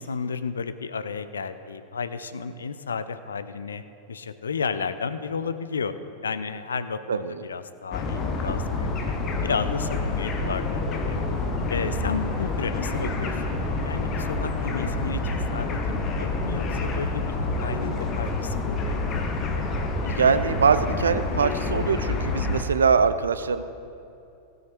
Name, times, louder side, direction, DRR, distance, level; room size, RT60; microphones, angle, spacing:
voice 1, 0.0-3.8 4.1-5.9 6.2-9.1 9.4-11.2 11.7-13.6 13.8-17.2 17.6-19.0, left 5 dB, 70° left, 12 dB, 0.6 m, -32 dB
voice 2, 7.1-7.4 11.8-12.2 20.0-23.6, right 5 dB, 70° right, 12 dB, 0.5 m, -23 dB
sound 1, 7.9-22.6, left 3 dB, 30° left, 1.4 m, -28 dB
16.0 x 9.5 x 4.5 m, 2.7 s
figure-of-eight pair, 90°, 0 cm